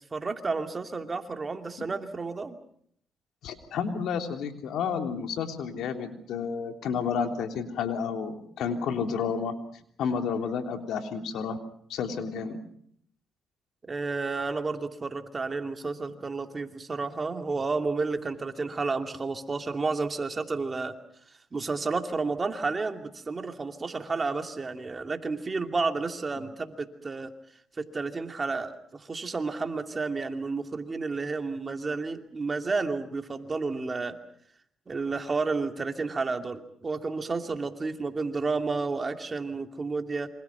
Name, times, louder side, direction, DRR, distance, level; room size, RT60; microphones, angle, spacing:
voice 1, 0.1-2.6 13.9-20.9 21.5-27.3 27.8-34.2 34.9-40.3, right 4 dB, 30° right, 5 dB, 2.6 m, -31 dB
voice 2, 3.4-9.5 10.0-11.6 11.9-12.6, left 6 dB, 80° left, 5 dB, 3.3 m, -31 dB
28.0 x 25.5 x 5.8 m, 0.66 s
cardioid pair, 90°, 0 cm